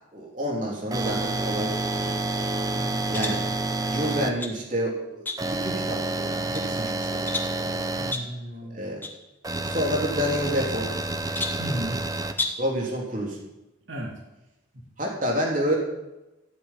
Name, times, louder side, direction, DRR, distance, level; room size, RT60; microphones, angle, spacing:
voice 1, 0.1-1.7 2.0-2.2 3.1-3.4 3.9-7.3 7.6-7.8 8.7-9.0 9.6-10.9 12.6-13.4 15.0-15.8, equal, 40° right, -2 dB, 3.4 m, -29 dB
sound 1, 0.9-4.3 5.4-8.1 9.4-12.3, right 2 dB, 20° right, 0.8 m, -29 dB
voice 2, 2.7-3.0 7.9-8.8 11.6-12.0 13.9-14.2 14.7-14.8, equal, 75° right, -1 dB, 3.1 m, -34 dB
sound 2, 3.1-3.5 4.1-4.6 5.3-5.7 6.2-6.7 7.3-7.6 8.1-8.4 9.0-9.2 9.5-9.6 10.5-11.0 11.3-11.7 12.3-12.7, left 2 dB, 10° left, 1.3 m, -33 dB
15.0 x 6.7 x 9.9 m, 0.99 s
head